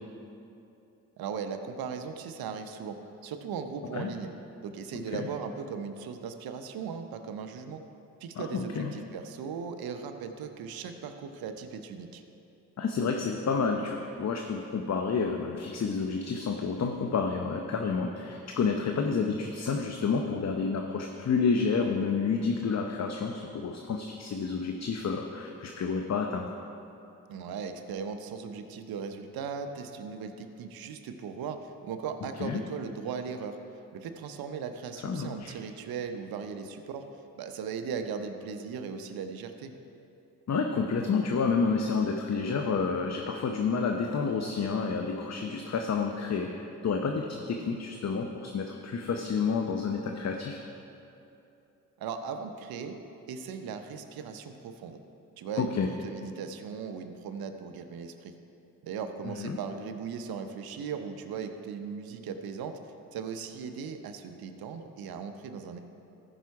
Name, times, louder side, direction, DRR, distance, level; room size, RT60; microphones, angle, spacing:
voice 1, 1.2-4.3 4.6-7.8 8.2-12.2 27.3-33.6 33.9-37.1 37.4-39.7 52.0-53.0 53.3-55.0 55.4-55.8 56.0-58.3 58.8-62.8 63.1-65.8, right 6 dB, 75° right, 7 dB, 0.8 m, -38 dB
voice 2, 8.4-8.9 12.8-26.5 32.4-32.6 35.0-35.5 40.5-50.6 55.6-55.9 59.3-59.6, left 5 dB, 45° left, 3 dB, 0.8 m, -29 dB
14.0 x 5.6 x 4.7 m, 2.8 s
supercardioid pair, 55°, 37 cm